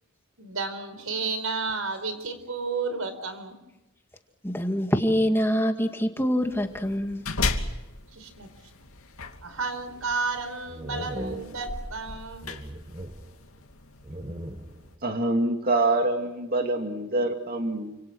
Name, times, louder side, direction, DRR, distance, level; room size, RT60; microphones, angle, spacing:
voice 1, 0.4-3.6 8.1-8.5 9.4-12.5, right 4 dB, 80° right, 10 dB, 4.9 m, -32 dB
voice 2, 4.4-7.2, equal, 10° left, 4 dB, 2.0 m, -25 dB
sound 1, 6.4-15.0, left 3 dB, 80° left, 2.8 m, -36 dB
sound 2, 9.9-10.3 10.7-12.1 12.4-13.7 14.0-15.0, right 1 dB, 25° right, 1.4 m, -39 dB
voice 3, 15.0-18.0, right 2 dB, 45° right, 4 dB, 2.4 m, -25 dB
29.5 x 27.0 x 6.2 m, 0.95 s
head